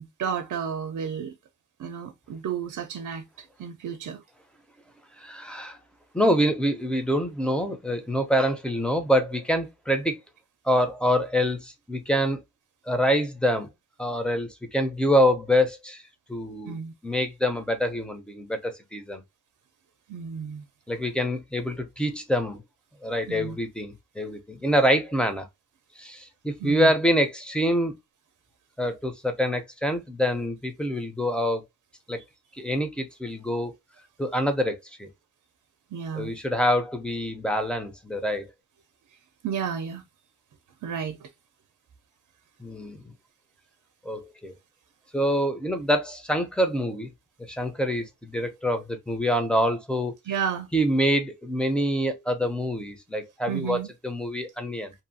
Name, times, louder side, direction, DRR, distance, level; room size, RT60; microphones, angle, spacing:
voice 1, 0.0-1.3 1.8-3.2 3.6-4.2 16.7-16.9 20.1-20.6 23.3-23.6 26.6-26.9 35.9-36.3 39.4-40.0 40.8-41.3 50.3-50.7 53.5-53.9, right 7 dB, 80° right, 0.5 m, -32 dB
voice 2, 5.2-5.8 6.1-10.1 10.6-12.4 12.9-13.7 14.0-16.0 16.3-19.2 20.9-22.6 23.0-25.5 26.0-27.9 28.8-31.6 32.1-32.2 32.6-33.7 34.2-35.1 36.1-38.5 42.6-43.1 44.0-44.5 45.1-47.1 47.5-50.1 50.7-54.9, equal, 5° left, 0.5 m, -26 dB
2.6 x 2.3 x 2.6 m
wide cardioid pair, 100°, 30 cm